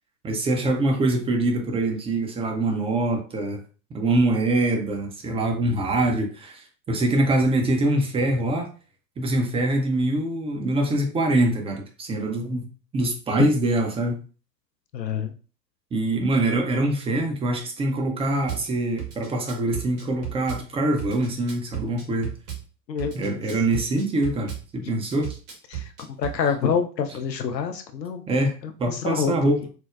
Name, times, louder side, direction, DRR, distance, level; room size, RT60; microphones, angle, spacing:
voice 1, 0.2-3.6 3.9-8.7 9.2-12.7 12.9-14.2 15.9-22.3 23.1-25.3 28.3-29.7, right 1 dB, 10° right, 3 dB, 0.4 m, -24 dB
voice 2, 14.9-15.3 22.9-23.4 24.8-24.9 25.7-28.2 28.6-29.5, left 7 dB, 90° left, 6 dB, 0.6 m, -27 dB
Drum kit / Bass drum, 18.5-18.6 19.0-20.6 21.0-22.6 23.0-24.6 25.1-26.4, right 11 dB, 55° right, 1.3 m, -34 dB
4.4 x 2.0 x 2.3 m, 0.36 s
figure-of-eight pair, 85°, 49 cm